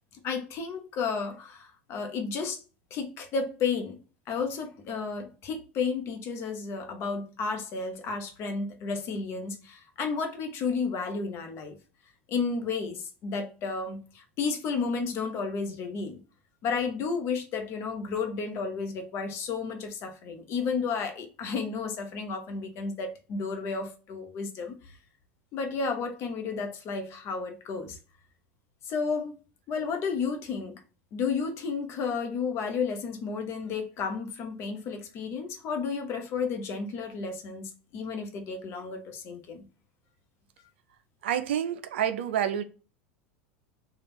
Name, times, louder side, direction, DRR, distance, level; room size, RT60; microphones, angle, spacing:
voice 1, 0.2-2.6 2.9-4.0 4.3-11.8 12.3-16.2 16.6-25.0 25.5-28.0 28.8-29.4 29.7-30.8 31.1-39.6, left 5 dB, 40° left, 0.9 m, -32 dB
voice 2, 41.2-42.6, right 10 dB, 65° right, 0.4 m, -28 dB
3.4 x 2.4 x 4.2 m
figure-of-eight pair, 80°, 7 cm